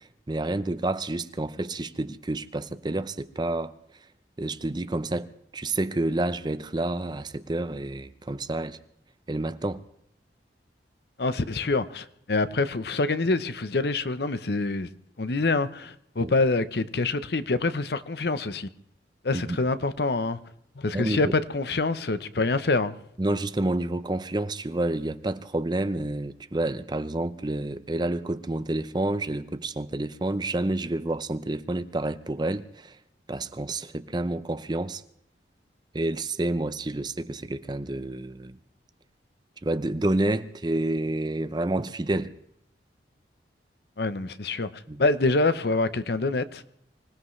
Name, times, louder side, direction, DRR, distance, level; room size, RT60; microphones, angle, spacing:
voice 1, 0.0-3.7 4.4-8.8 9.3-9.8 16.2-16.3 19.3-19.6 20.9-21.3 23.2-33.0 33.3-35.0 35.9-38.6 39.6-42.3 44.9-45.0, right 2 dB, 25° right, 0.6 m, -29 dB
voice 2, 11.2-14.9 15.2-18.7 19.2-20.4 20.8-23.0 44.0-44.7 45.0-46.6, left 3 dB, 60° left, 0.8 m, -26 dB
25.0 x 17.5 x 3.2 m
head